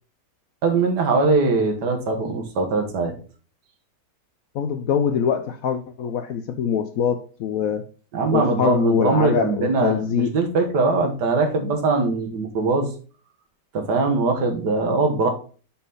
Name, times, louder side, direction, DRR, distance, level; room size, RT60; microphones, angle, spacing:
voice 1, 0.6-3.1 8.1-12.9 13.7-15.3, right 3 dB, 70° right, 1.9 m, -21 dB
voice 2, 4.5-7.9 8.3-10.3, left 7 dB, 70° left, 0.8 m, -24 dB
6.5 x 4.0 x 5.3 m
omnidirectional pair, 1.9 m